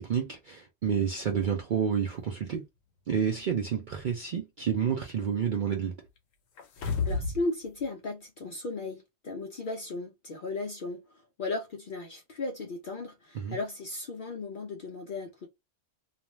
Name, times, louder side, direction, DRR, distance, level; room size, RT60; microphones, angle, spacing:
voice 1, 0.0-2.6 3.1-5.9 13.3-13.6, right 7 dB, 65° right, 0.5 m, -29 dB
sound 1, 6.6-7.4 7.8-7.9, left 4 dB, 80° left, 1.0 m, -30 dB
voice 2, 7.0-11.0 11.4-15.5, left 3 dB, 60° left, 0.5 m, -36 dB
2.4 x 2.1 x 3.0 m
omnidirectional pair, 1.3 m